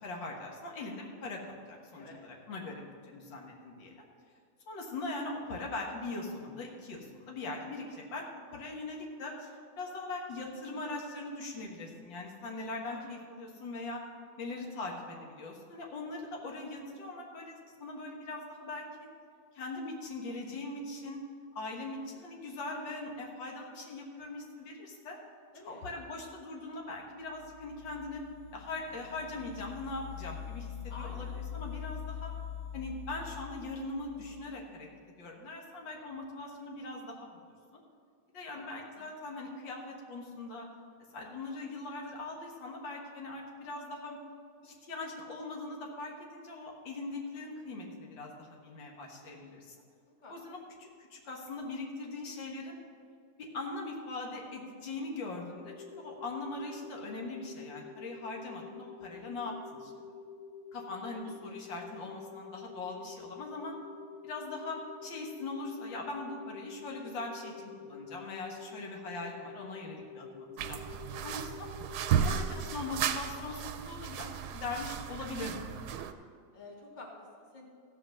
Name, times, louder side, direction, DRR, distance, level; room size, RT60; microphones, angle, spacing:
voice 1, 0.0-4.0 4.7-8.2 8.5-14.0 14.4-19.1 19.6-21.2 21.6-25.2 25.6-28.2 28.5-32.3 32.7-34.9 35.2-37.3 38.3-40.7 41.1-44.2 44.6-49.8 50.3-52.8 53.4-59.5 59.8-59.9 60.7-63.8 64.2-71.7 72.2-75.6 75.9-76.1, left 2 dB, 85° left, 0 dB, 2.1 m, -41 dB
voice 2, 1.9-2.2 12.9-13.2 25.5-25.9 30.9-31.4 38.5-38.6 38.9-39.1 50.2-50.3 61.4-61.6 71.1-71.4 76.5-77.7, left 2 dB, 25° left, -1 dB, 1.4 m, -50 dB
sound 1, 27.2-34.7, left 8 dB, 55° left, 1.0 m, -44 dB
sound 2, 55.6-72.8, left 5 dB, 30° right, 0.8 m, -48 dB
sound 3, 70.6-76.1, right 8 dB, 75° right, 1.1 m, -34 dB
14.5 x 5.3 x 6.5 m, 2.2 s
omnidirectional pair, 2.0 m